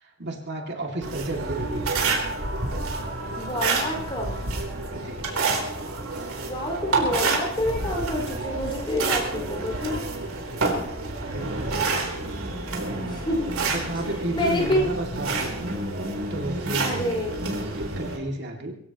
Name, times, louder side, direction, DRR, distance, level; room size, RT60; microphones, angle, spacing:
voice 1, 0.0-2.3 4.9-5.3 11.2-12.1 13.7-15.7 16.3-17.0 17.7-18.7, right 1 dB, 55° right, 1 dB, 2.5 m, -32 dB
sound 1, 1.0-18.2, right 3 dB, 85° right, 3.7 m, -29 dB
voice 2, 3.4-4.4 6.4-10.0 13.0-13.5 14.3-14.9 16.8-17.4, left 1 dB, 25° left, -1 dB, 5.3 m, -28 dB
23.0 x 16.0 x 3.0 m, 0.76 s
head